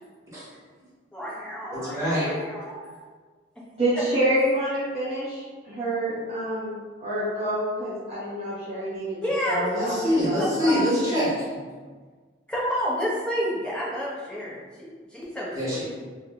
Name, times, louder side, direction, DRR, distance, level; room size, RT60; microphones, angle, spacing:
voice 1, 1.1-2.9 3.9-4.1 9.2-9.7 10.7-10.8 12.5-15.8, equal, 5° left, -6 dB, 0.7 m, -30 dB
voice 2, 1.7-2.3 9.6-11.6 15.5-15.8, equal, 15° right, -9 dB, 1.3 m, -25 dB
voice 3, 3.8-9.2 9.4-10.8, right 1 dB, 35° right, -13 dB, 1.3 m, -27 dB
3.2 x 2.3 x 3.5 m, 1.4 s
head